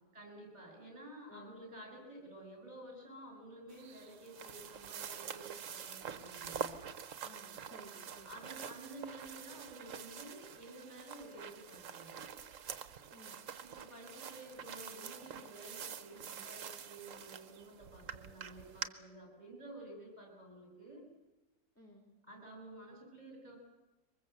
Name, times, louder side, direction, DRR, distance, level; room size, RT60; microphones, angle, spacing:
voice 1, 0.1-6.7 8.2-12.3 13.6-21.0 22.2-23.6, right 1 dB, 25° right, 2 dB, 7.1 m, -52 dB
sound 1, 3.7-18.9, right 8 dB, 60° right, 1.3 m, -46 dB
voice 2, 7.2-8.5 13.1-13.4 18.0-18.2 21.7-22.0, equal, 10° left, -2 dB, 3.4 m, -57 dB
23.5 x 21.0 x 8.0 m, 1.1 s
omnidirectional pair, 1.7 m